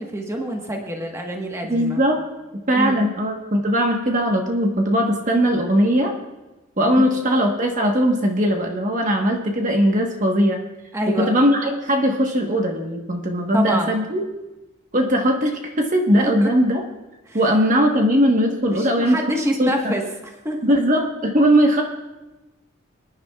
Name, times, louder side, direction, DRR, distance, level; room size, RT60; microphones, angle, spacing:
voice 1, 0.0-2.0 2.7-3.0 7.0-7.2 10.9-11.3 13.5-14.0 16.2-16.5 17.3-17.4 18.7-20.0 20.4-20.8, right 1 dB, 15° right, 1 dB, 1.2 m, -26 dB
voice 2, 1.7-2.2 2.7-6.1 6.8-10.6 11.2-14.2 14.9-16.8 17.3-19.2 19.6-20.0 20.6-21.8, equal, 35° right, 2 dB, 1.2 m, -19 dB
25.0 x 10.0 x 2.3 m, 1.1 s
head